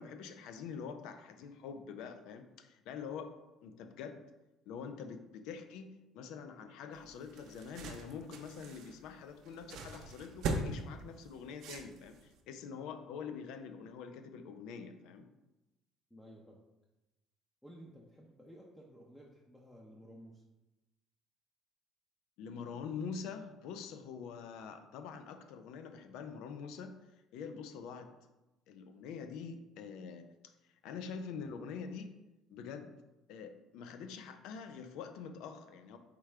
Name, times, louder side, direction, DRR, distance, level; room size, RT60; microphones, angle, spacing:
voice 1, 0.0-3.3 3.6-4.2 4.7-15.3 22.4-27.0 27.3-28.1 28.7-30.5 30.8-32.1 32.5-32.9 33.3-36.0, left 6 dB, 80° left, 8 dB, 0.4 m, -45 dB
sound 1, 7.0-12.4, right 3 dB, 70° right, 0.6 m, -41 dB
voice 2, 16.1-16.6 17.6-20.4, equal, 10° left, -2 dB, 0.7 m, -55 dB
4.5 x 3.6 x 3.2 m, 1.0 s
supercardioid pair, 75°, 0 cm